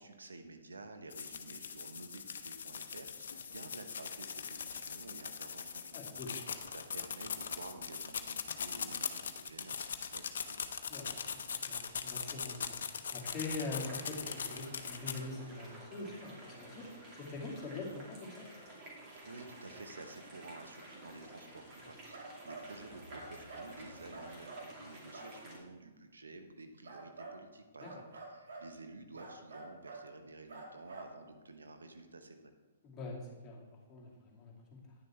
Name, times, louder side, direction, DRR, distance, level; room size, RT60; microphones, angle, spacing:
voice 1, 0.0-6.4 6.7-10.5 19.2-32.5, right 3 dB, 85° right, 7 dB, 0.9 m, -51 dB
sound 1, 1.1-15.2, left 6 dB, 70° left, 0.7 m, -41 dB
voice 2, 5.9-6.3 10.9-12.8 13.1-16.9 17.1-18.5 27.8-27.9 32.8-34.8, left 3 dB, 20° left, -4 dB, 2.3 m, -44 dB
sound 2, 13.2-25.6, right 1 dB, 30° right, 2.8 m, -52 dB
sound 3, 22.1-22.7 23.1-23.7 24.1-24.7 25.1-25.3 26.8-27.4 27.8-28.7 29.2-30.1 30.5-31.1, right 3 dB, 70° right, 1.8 m, -48 dB
9.9 x 6.5 x 4.4 m, 1.2 s
hypercardioid pair, 125°, 0 cm